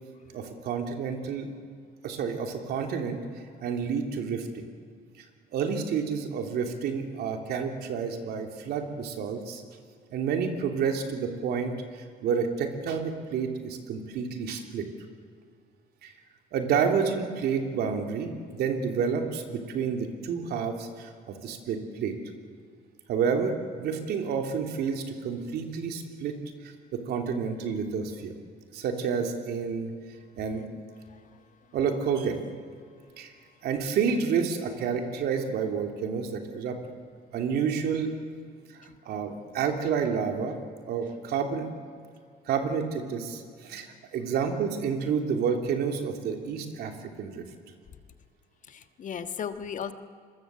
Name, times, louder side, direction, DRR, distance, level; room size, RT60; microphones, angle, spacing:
voice 1, 0.3-1.5 2.0-3.2 3.6-4.7 5.5-9.6 10.1-14.9 16.0-16.1 16.5-22.2 23.1-26.3 26.6-28.3 28.7-30.7 31.7-32.4 33.2-33.3 33.6-36.8 37.3-38.1 38.8-40.6 40.9-41.7 42.5-47.4, right 6 dB, 70° right, 4 dB, 3.3 m, -29 dB
voice 2, 48.7-49.9, left 7 dB, 50° left, 9 dB, 1.4 m, -36 dB
26.0 x 22.5 x 7.8 m, 2.1 s
cardioid pair, 110°, 17 cm